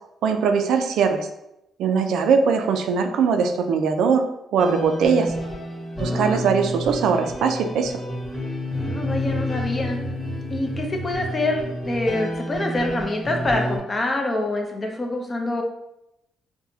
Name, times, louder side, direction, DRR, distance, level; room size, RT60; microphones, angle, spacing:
voice 1, 0.2-1.3 1.8-4.3 4.5-5.3 6.0-8.0, right 5 dB, 80° right, 6 dB, 0.4 m, -21 dB
sound 1, 4.6-13.8, left 1 dB, ahead, 1.4 m, -30 dB
voice 2, 6.0-6.5 8.8-10.0 10.5-15.6, left 2 dB, 30° left, 2 dB, 0.7 m, -26 dB
sound 2, 8.7-12.0, right 3 dB, 25° right, 0.6 m, -34 dB
4.7 x 2.2 x 2.7 m, 0.86 s
cardioid pair, 90°, 0 cm